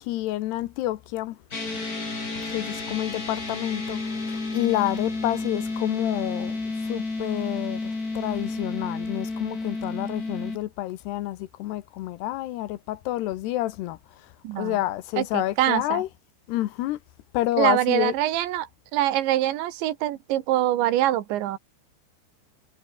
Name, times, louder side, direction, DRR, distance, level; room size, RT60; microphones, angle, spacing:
voice 1, 0.0-1.4 2.5-14.0 14.5-16.1 16.5-17.0 17.3-18.1, left 15 dB, 75° left, 3.0 m, -29 dB
sound 1, 1.5-10.6, left 3 dB, 20° left, 4.2 m, -31 dB
voice 2, 14.4-14.8 15.2-16.0 17.6-21.6, right 13 dB, 85° right, 3.9 m, -24 dB
omnidirectional pair, 5.1 m